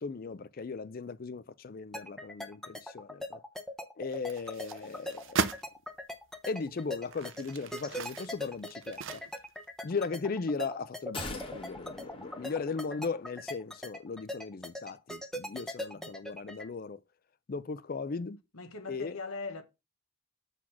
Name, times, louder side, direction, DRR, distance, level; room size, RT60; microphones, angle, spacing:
voice 1, 0.0-3.4 4.0-5.5 6.5-9.2 9.8-17.0 17.5-18.4 18.9-19.2, left 4 dB, 45° left, 0.4 m, -37 dB
sound 1, 1.9-16.6, left 1 dB, ahead, 0.7 m, -40 dB
sound 2, 4.1-5.7 6.3-6.4 7.0-9.7 10.0-10.1, right 5 dB, 60° right, 0.6 m, -37 dB
sound 3, 11.1-13.5 13.8-13.9, left 2 dB, 25° left, 1.1 m, -43 dB
voice 2, 18.5-19.6, left 4 dB, 85° left, 1.2 m, -40 dB
6.2 x 4.1 x 5.7 m
head